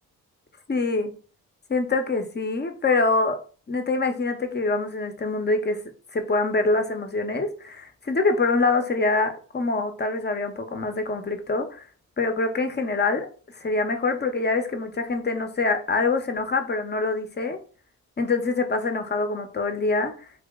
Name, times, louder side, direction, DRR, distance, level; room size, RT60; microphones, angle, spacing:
voice 1, 0.7-1.1 1.7-3.4 3.7-5.8 6.1-11.8 12.2-13.3 13.6-17.6 18.2-20.1, left 3 dB, 30° left, 7 dB, 0.8 m, -25 dB
2.9 x 2.8 x 3.5 m, 0.39 s
cardioid pair, 70°, 34 cm